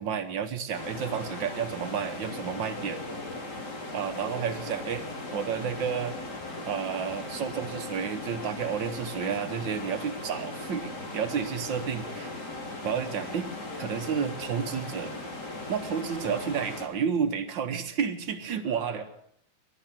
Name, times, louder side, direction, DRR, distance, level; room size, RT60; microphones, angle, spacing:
voice 1, 0.0-3.0 3.9-5.0 5.3-6.2 6.6-12.3 12.8-13.5 13.8-15.1 15.7-19.0, right 7 dB, 80° right, 7 dB, 1.7 m, -31 dB
sound 1, 0.7-16.9, left 2 dB, 60° left, 3.3 m, -38 dB
voice 2, 2.8-3.4 4.2-4.8 10.2-10.5 12.0-12.2 13.7-13.9 18.6-19.0, right 1 dB, 15° left, 1 dB, 5.0 m, -45 dB
22.5 x 7.8 x 7.4 m, 0.71 s
omnidirectional pair, 2.0 m